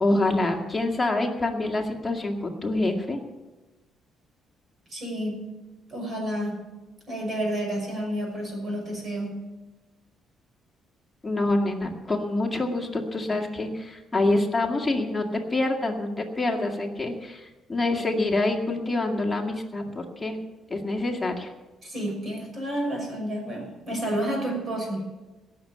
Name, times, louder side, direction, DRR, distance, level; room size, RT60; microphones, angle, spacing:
voice 1, 0.0-3.2 11.2-15.3 15.5-20.4 20.7-21.5, left 2 dB, 15° left, 1 dB, 2.1 m, -26 dB
voice 2, 4.9-5.5 5.9-6.7 7.1-9.4 21.8-25.0, right 1 dB, 30° right, 1 dB, 6.1 m, -30 dB
17.5 x 7.0 x 8.7 m, 1.2 s
cardioid pair, 125°, 0 cm